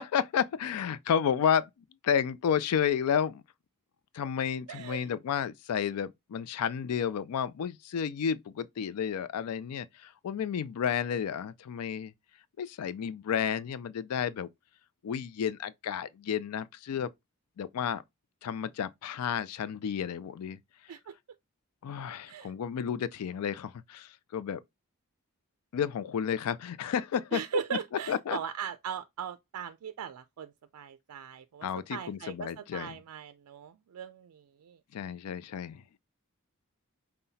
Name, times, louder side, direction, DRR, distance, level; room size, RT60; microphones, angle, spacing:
voice 1, 0.0-1.7 2.0-3.4 4.1-12.1 12.6-14.5 15.0-17.1 17.6-18.0 18.4-20.6 21.8-24.6 25.7-27.4 28.1-28.4 31.6-33.0 34.9-35.8, left 8 dB, 85° left, 0.4 m, -31 dB
voice 2, 4.7-5.1 20.9-21.1 22.2-22.5 27.3-34.8, right 8 dB, 85° right, 0.4 m, -39 dB
5.6 x 2.2 x 4.0 m
head